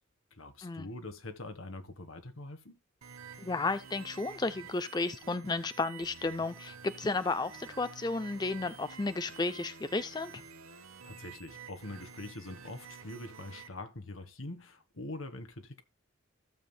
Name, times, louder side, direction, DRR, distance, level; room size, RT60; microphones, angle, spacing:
voice 1, 0.3-2.8 11.0-15.8, left 2 dB, 80° left, 1.4 m, -44 dB
sound 1, 3.0-13.7, right 6 dB, 90° right, 1.2 m, -50 dB
voice 2, 3.4-10.4, left 3 dB, 20° left, 0.4 m, -33 dB
15.5 x 7.3 x 2.2 m
head